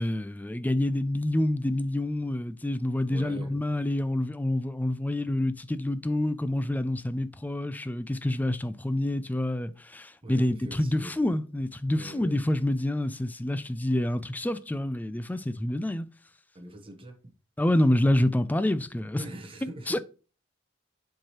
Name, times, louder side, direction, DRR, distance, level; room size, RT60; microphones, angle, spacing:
voice 1, 0.0-16.1 17.6-19.2 19.9-20.0, left 1 dB, 10° left, 0.3 m, -27 dB
voice 2, 3.1-3.5 10.2-11.2 11.9-12.4 16.5-17.3 19.2-20.0, right 1 dB, 30° right, 1.0 m, -43 dB
7.4 x 4.7 x 3.0 m
head